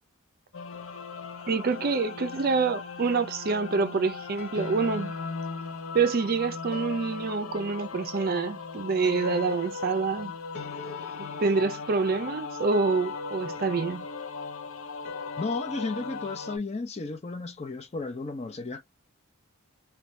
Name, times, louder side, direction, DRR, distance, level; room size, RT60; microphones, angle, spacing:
sound 1, 0.5-16.6, left 5 dB, 70° left, 0.6 m, -37 dB
voice 1, 1.5-5.1 5.9-10.3 11.2-14.1, right 4 dB, 45° right, 0.4 m, -27 dB
voice 2, 15.4-18.8, left 3 dB, 30° left, 0.5 m, -33 dB
2.6 x 2.3 x 3.1 m
head